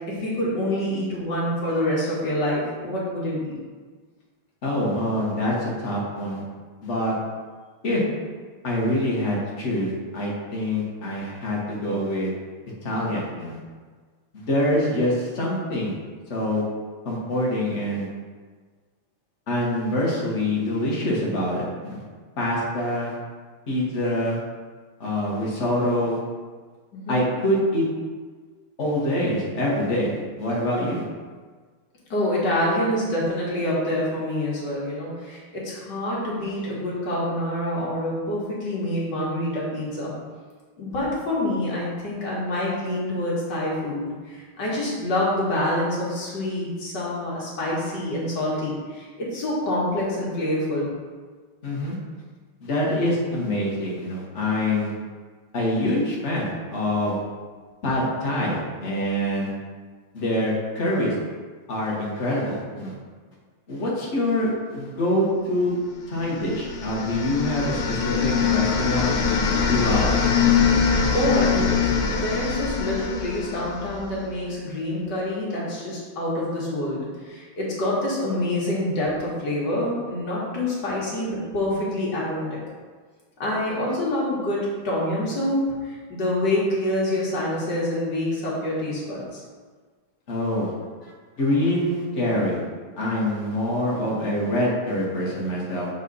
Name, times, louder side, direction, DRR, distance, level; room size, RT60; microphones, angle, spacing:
voice 1, 0.1-3.5 26.9-27.3 32.1-40.1 40.8-50.9 70.9-71.8 72.1-77.0 77.3-82.6 83.4-89.4, left 1 dB, 55° left, -6 dB, 2.2 m, -26 dB
voice 2, 4.6-6.4 6.8-7.1 7.8-8.0 8.6-12.3 12.8-13.6 14.3-16.0 16.3-16.6 17.0-18.1 19.5-22.0 22.4-23.1 23.7-24.4 25.0-26.2 27.1-27.8 28.8-31.0 51.6-52.0 52.6-54.9 55.5-57.2 57.8-59.5 60.1-61.1 61.7-62.9 63.7-65.8 66.1-69.2 69.7-70.1 90.3-90.7 91.0-91.1 91.4-92.6 93.0-95.9, left 1 dB, 35° left, -4 dB, 1.7 m, -25 dB
sound 1, 66.2-74.2, left 6 dB, 75° left, 1.6 m, -23 dB
7.0 x 4.1 x 4.1 m, 1.5 s
omnidirectional pair, 2.3 m